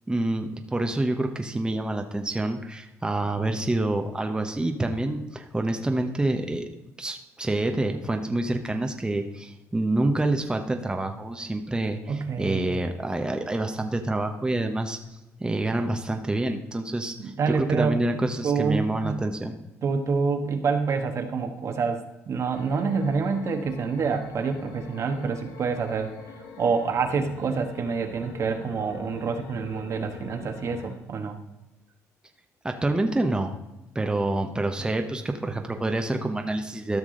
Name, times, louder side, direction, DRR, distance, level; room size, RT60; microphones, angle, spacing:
voice 1, 0.1-6.6 7.0-15.0 15.4-19.5 32.6-33.6 33.9-37.0, right 2 dB, 15° right, 4 dB, 1.0 m, -27 dB
voice 2, 12.1-12.7 17.2-18.0 18.4-19.2 19.8-26.1 26.6-31.4, right 5 dB, 55° right, 5 dB, 1.3 m, -27 dB
sound 1, 22.5-31.0, left 5 dB, 85° left, 1.5 m, -43 dB
13.5 x 6.1 x 3.9 m, 0.96 s
cardioid pair, 80°, 6 cm